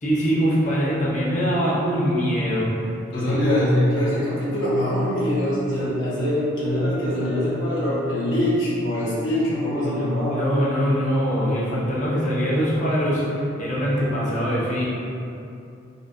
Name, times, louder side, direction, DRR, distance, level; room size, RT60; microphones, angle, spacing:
voice 1, 0.0-3.4 10.3-14.9, equal, 40° left, -7 dB, 0.8 m, -23 dB
voice 2, 3.1-10.5, left 1 dB, 70° left, -10 dB, 1.3 m, -23 dB
4.2 x 3.2 x 2.6 m, 2.7 s
head